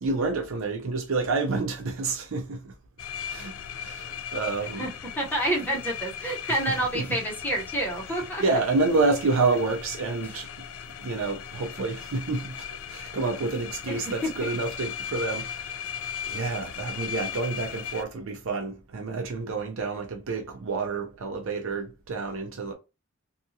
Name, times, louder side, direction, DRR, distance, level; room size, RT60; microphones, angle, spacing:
voice 1, 0.0-2.7 3.3-4.9 6.5-7.2 8.0-10.5 11.0-15.9 16.3-22.7, right 3 dB, 75° right, 0.5 m, -29 dB
sound 1, 3.0-18.0, left 8 dB, 80° left, 0.3 m, -38 dB
voice 2, 5.2-8.4 10.2-10.4 13.9-14.3, right 1 dB, 10° left, 0.8 m, -28 dB
2.8 x 2.3 x 2.7 m
head